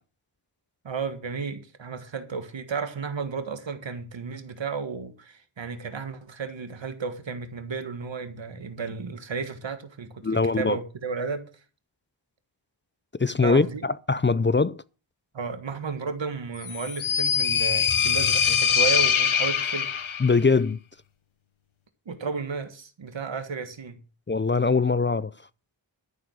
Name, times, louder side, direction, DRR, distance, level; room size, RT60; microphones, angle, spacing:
voice 1, 0.8-11.5 13.4-13.8 15.3-19.9 22.0-24.0, right 5 dB, 70° right, 1.7 m, -33 dB
voice 2, 10.2-10.8 13.2-14.8 20.2-20.8 24.3-25.3, left 4 dB, 25° left, 0.5 m, -22 dB
sound 1, 16.6-20.4, left 7 dB, 85° left, 1.2 m, -23 dB
13.0 x 7.0 x 6.5 m
wide cardioid pair, 75°, 47 cm